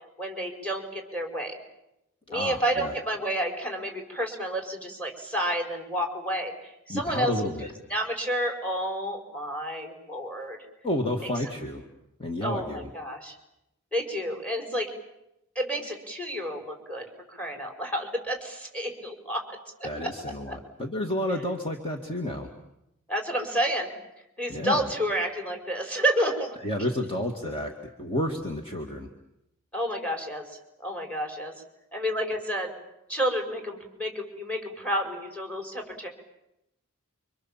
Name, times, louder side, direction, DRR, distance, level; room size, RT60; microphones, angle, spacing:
voice 1, 0.2-1.6 2.3-7.3 7.9-10.6 12.4-13.3 13.9-14.9 15.5-19.6 20.0-20.1 23.1-23.9 24.4-26.6 29.7-30.4 30.8-31.5 31.9-32.7 33.1-36.1, equal, 5° left, 3 dB, 5.1 m, -30 dB
voice 2, 2.3-2.9 6.9-7.7 10.8-11.9 12.2-12.9 19.8-22.5 24.5-24.9 26.6-27.7 28.0-29.1, left 1 dB, 25° left, 3 dB, 2.1 m, -30 dB
29.5 x 25.5 x 7.4 m, 0.85 s
head